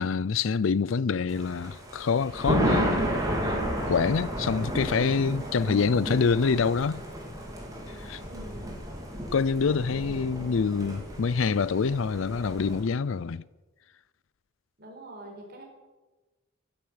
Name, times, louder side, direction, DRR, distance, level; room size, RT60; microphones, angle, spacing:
voice 1, 0.0-3.1 3.4-3.6 3.9-7.0 8.0-8.2 9.3-13.4, left 5 dB, 70° left, 0.5 m, -26 dB
Thunder, 1.3-12.8, equal, 15° right, 3.3 m, -32 dB
voice 2, 8.3-8.8 14.8-15.6, right 1 dB, 50° right, 4.5 m, -45 dB
13.0 x 11.5 x 8.8 m
head